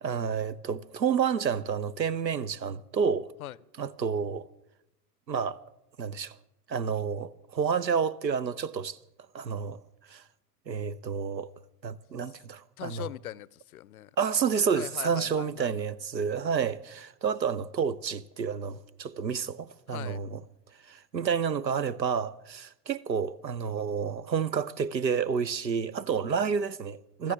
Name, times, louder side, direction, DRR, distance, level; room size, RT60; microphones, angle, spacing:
voice 1, 0.0-3.3 3.8-4.5 5.3-5.6 6.0-6.4 6.7-9.0 9.3-9.8 10.1-10.2 10.7-11.5 11.8-13.1 14.2-20.4 20.8-27.3, right 6 dB, 85° right, 0.8 m, -30 dB
voice 2, 12.8-14.1 14.8-15.7 19.9-20.2 27.2-27.3, left 13 dB, 60° left, 0.6 m, -40 dB
25.0 x 13.5 x 3.5 m
figure-of-eight pair, 90°, 50 cm